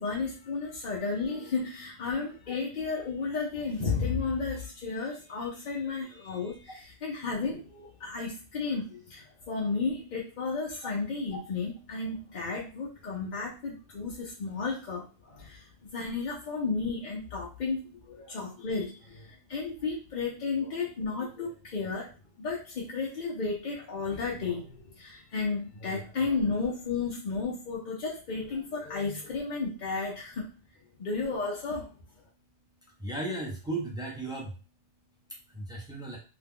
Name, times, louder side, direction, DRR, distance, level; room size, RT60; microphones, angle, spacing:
voice 1, 0.0-15.6 15.9-22.1 22.4-30.5 31.0-31.9, left 4 dB, 50° left, -3 dB, 0.6 m, -33 dB
voice 2, 33.0-34.5 35.6-36.2, right 2 dB, 5° right, -2 dB, 0.4 m, -35 dB
2.8 x 2.3 x 3.5 m, 0.34 s
omnidirectional pair, 1.3 m